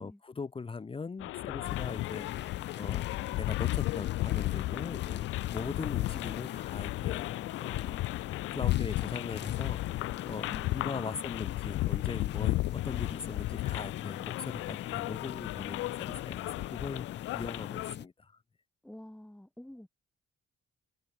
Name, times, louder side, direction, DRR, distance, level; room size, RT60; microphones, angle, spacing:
voice 1, 0.0-3.0 3.4-5.2 5.5-7.3 7.6-7.9 8.5-16.4 16.7-18.4, left 4 dB, 25° left, 1.2 m, -40 dB
sound 1, 1.2-18.0, left 18 dB, 85° left, 0.4 m, -34 dB
sound 2, 1.6-18.1, left 11 dB, 60° left, 1.1 m, -43 dB
voice 2, 18.8-19.9, left 1 dB, 5° left, 2.9 m, -49 dB
cardioid pair, 90°, 20 cm